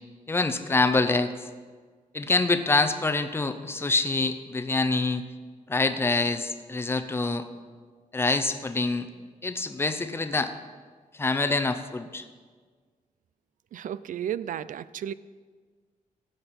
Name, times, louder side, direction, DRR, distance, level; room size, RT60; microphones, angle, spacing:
voice 1, 0.3-1.3 2.1-5.2 5.7-7.4 8.1-9.1 9.4-10.5 11.2-12.2, left 3 dB, 15° left, 8 dB, 0.6 m, -25 dB
voice 2, 13.7-15.1, right 10 dB, 75° right, 17 dB, 0.4 m, -33 dB
15.0 x 9.0 x 4.3 m, 1.5 s
wide cardioid pair, 150°, 14 cm